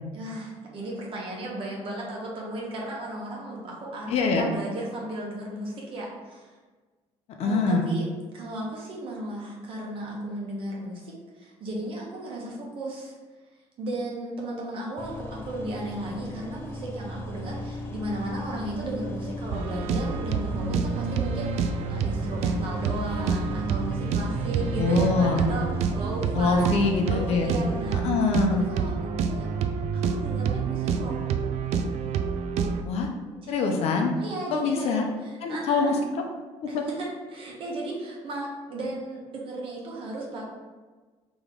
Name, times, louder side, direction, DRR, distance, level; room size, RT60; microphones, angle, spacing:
voice 1, 0.1-6.6 7.4-8.1 8.3-13.2 13.8-28.1 28.5-29.5 29.9-31.2 33.2-33.8 34.2-35.9 36.7-40.4, right 1 dB, 50° right, -3 dB, 1.1 m, -35 dB
voice 2, 4.1-4.5 7.4-7.9 24.8-25.5 26.3-27.5 28.0-28.7 32.8-33.1 33.5-34.1 34.5-35.1 35.4-36.2 36.7-36.8, left 4 dB, 60° left, 2 dB, 0.6 m, -24 dB
sound 1, 15.0-28.0, left 1 dB, 20° left, 0.5 m, -37 dB
sound 2, 19.5-32.8, right 6 dB, 70° right, 0.4 m, -28 dB
3.4 x 3.0 x 3.8 m, 1.3 s
cardioid pair, 135°, 12 cm